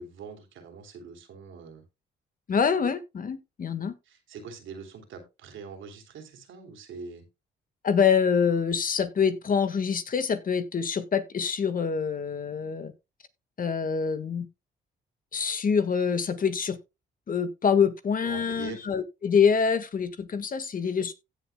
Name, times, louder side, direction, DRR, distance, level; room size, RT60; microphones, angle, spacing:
voice 1, 0.0-1.8 4.1-7.3 18.2-18.9, right 5 dB, 75° right, 3.1 m, -43 dB
voice 2, 2.5-3.9 7.8-12.9 13.6-14.5 15.3-16.8 17.3-21.1, left 6 dB, 45° left, 1.5 m, -25 dB
16.0 x 7.3 x 2.2 m
cardioid pair, 90°, 20 cm